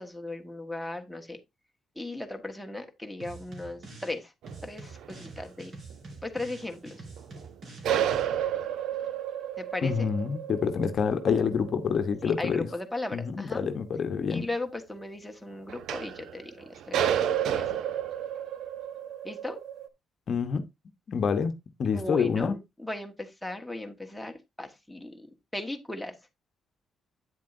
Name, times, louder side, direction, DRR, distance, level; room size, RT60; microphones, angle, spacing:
voice 1, 0.0-1.4 1.9-4.3 4.6-5.7 6.2-7.0 9.6-10.1 12.2-13.7 14.3-17.2 17.6-17.8 19.2-19.6 21.9-26.1, left 2 dB, 5° left, 1.4 m, -37 dB
sound 1, 3.2-4.2 4.5-8.2, right 3 dB, 55° right, 3.4 m, -46 dB
sound 2, 4.4-5.4 5.9-6.0 6.6-6.7 7.2-7.5 7.8-13.3 15.7-19.9, right 10 dB, 75° right, 0.7 m, -31 dB
voice 2, 9.8-12.7 13.1-14.5 20.3-20.7 21.1-21.5 21.8-22.6, left 6 dB, 55° left, 0.9 m, -27 dB
8.8 x 7.4 x 2.6 m
cardioid pair, 90°, 0 cm